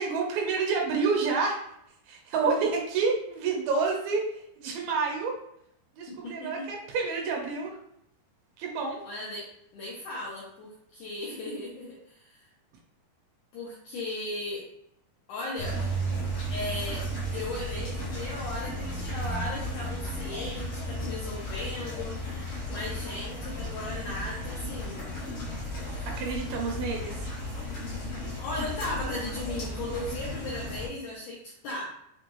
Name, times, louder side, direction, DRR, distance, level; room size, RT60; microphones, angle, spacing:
voice 1, 0.0-1.7 2.1-5.4 5.9-7.8 8.6-9.0 26.1-27.3, right 4 dB, 75° right, 1 dB, 2.5 m, -29 dB
voice 2, 6.1-6.7 9.1-12.5 13.5-14.7 15.3-15.8 16.5-25.0 25.8-26.2 28.4-31.9, left 2 dB, 80° left, -5 dB, 1.9 m, -37 dB
sound 1, 15.6-30.9, equal, 60° left, 1.4 m, -34 dB
6.1 x 2.3 x 3.0 m, 0.73 s
omnidirectional pair, 4.6 m